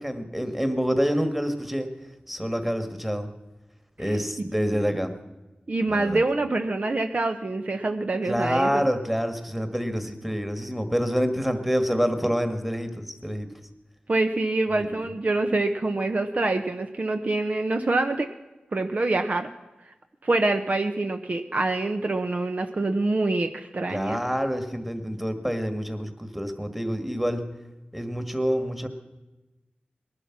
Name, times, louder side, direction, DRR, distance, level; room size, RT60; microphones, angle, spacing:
voice 1, 0.0-1.9 2.3-3.3 4.0-5.1 5.9-6.2 8.3-13.5 14.7-14.9 23.9-27.4 27.9-28.9, equal, 5° right, 8 dB, 1.7 m, -27 dB
voice 2, 5.7-8.9 14.1-18.3 18.7-19.5 20.2-24.2, right 2 dB, 50° right, 6 dB, 0.8 m, -25 dB
19.5 x 11.5 x 6.0 m, 1.1 s
wide cardioid pair, 70°, 3 cm